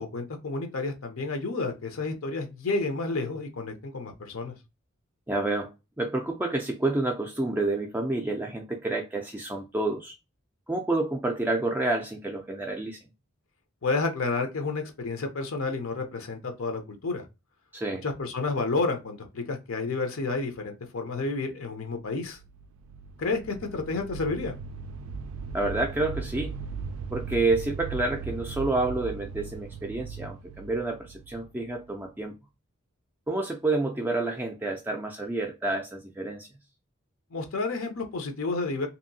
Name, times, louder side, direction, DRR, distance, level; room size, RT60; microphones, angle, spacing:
voice 1, 0.0-4.5 13.8-17.2 18.0-22.4 23.2-24.5 37.3-38.9, left 3 dB, 75° left, 0.6 m, -30 dB
voice 2, 5.3-5.7 6.0-10.1 10.7-13.0 17.7-18.0 25.5-26.5 27.1-32.3 33.3-36.5, right 2 dB, 10° right, 0.3 m, -29 dB
sound 1, 22.2-32.0, right 5 dB, 90° right, 0.3 m, -38 dB
2.8 x 2.6 x 2.6 m
head